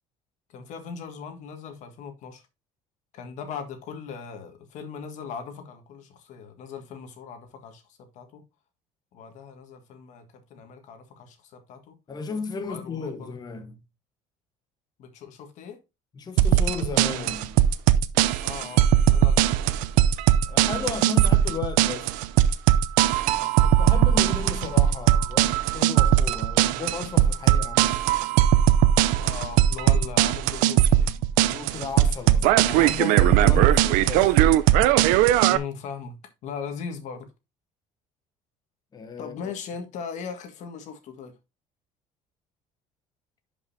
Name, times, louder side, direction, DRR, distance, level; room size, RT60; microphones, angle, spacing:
voice 1, 0.5-2.4 3.1-8.4 9.1-12.0 12.7-13.3 15.0-15.8 18.4-19.6 23.3-23.8 29.2-31.1 33.5-33.8 35.5-37.3 39.2-41.3, left 6 dB, 65° left, 1.8 m, -39 dB
voice 2, 12.1-13.8 16.1-17.6 20.4-22.1 23.6-28.2 31.4-34.8 38.9-39.5, left 5 dB, 30° left, 1.2 m, -35 dB
sound 1, 16.4-35.6, right 12 dB, 85° right, 0.5 m, -19 dB
11.0 x 5.4 x 2.7 m
cardioid pair, 110°, 13 cm